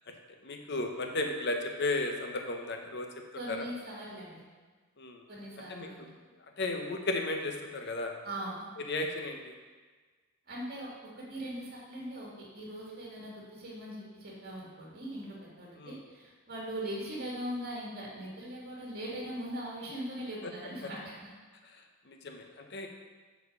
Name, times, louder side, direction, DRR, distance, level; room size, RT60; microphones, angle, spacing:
voice 1, 0.4-3.1 3.5-3.7 5.0-5.2 5.7-5.9 6.6-8.1 8.8-9.5 15.8-16.0 20.8-20.9 21.6-22.9, left 2 dB, 50° left, 4 dB, 0.7 m, -34 dB
voice 2, 3.3-4.4 5.3-6.1 8.2-8.7 10.5-21.3, right 1 dB, 50° right, -5 dB, 2.1 m, -40 dB
6.9 x 4.4 x 5.2 m, 1.4 s
head